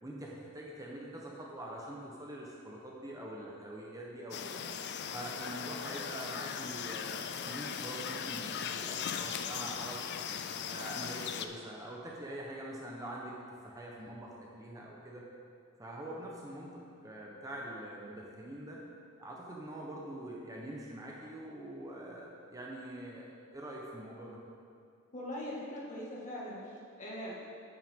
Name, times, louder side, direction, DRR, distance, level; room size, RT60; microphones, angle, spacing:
voice 1, 0.0-4.6 5.1-10.1 10.6-13.4 13.6-15.3 15.8-18.8 19.2-24.4, right 1 dB, 15° right, -3 dB, 0.9 m, -44 dB
sound 1, 4.3-11.5, left 7 dB, 55° left, 0.4 m, -38 dB
voice 2, 25.1-27.5, left 1 dB, 35° left, -4 dB, 1.8 m, -41 dB
9.0 x 8.9 x 3.7 m, 2.5 s
head